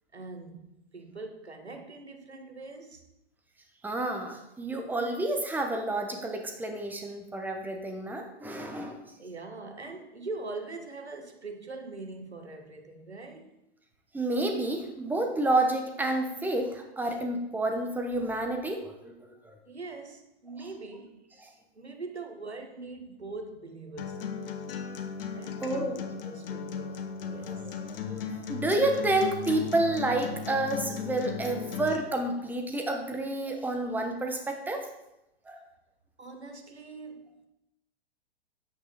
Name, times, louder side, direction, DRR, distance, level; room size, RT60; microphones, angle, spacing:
voice 1, 0.1-0.6 0.9-3.0 9.2-13.5 19.7-21.3 21.7-24.2 25.4-27.7 36.2-37.5, right 3 dB, 90° right, 1.5 m, -42 dB
voice 2, 3.8-9.0 14.1-19.6 21.4-21.5 25.6-26.0 27.4-34.9 35.5-35.6, right 2 dB, 5° right, 1.1 m, -30 dB
Acoustic guitar, 24.0-32.0, left 7 dB, 60° left, 1.3 m, -36 dB
9.5 x 8.4 x 4.0 m
figure-of-eight pair, 105°, 32 cm